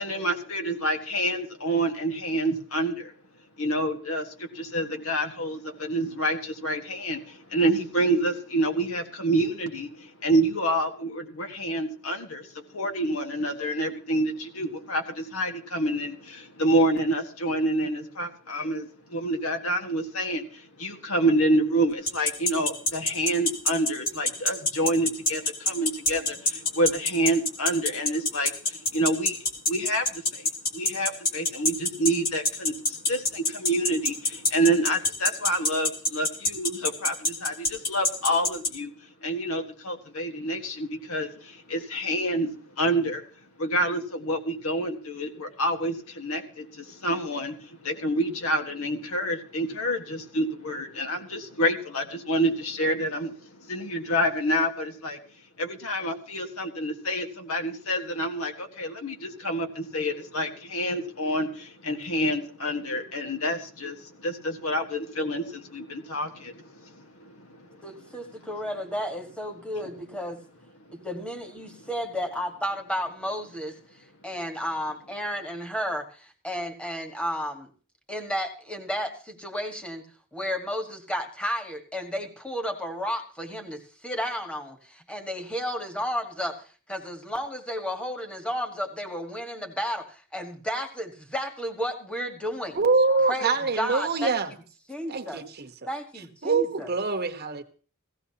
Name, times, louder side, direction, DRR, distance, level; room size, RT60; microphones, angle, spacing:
voice 1, 0.0-3.1 3.6-38.9 39.2-43.2 43.6-55.2 55.6-67.8, right 1 dB, 75° left, 1.6 m, -28 dB
sound 1, 22.1-38.7, left 2 dB, 40° left, 1.9 m, -24 dB
voice 2, 67.8-70.4 70.9-77.7 78.1-80.0 80.3-86.6 86.9-92.8 93.3-94.6 94.9-95.4 95.9-96.9, equal, 5° left, 1.5 m, -32 dB
voice 3, 92.7-94.5 95.1-95.7 96.4-97.6, right 4 dB, 45° right, 1.0 m, -24 dB
16.5 x 15.5 x 2.9 m
head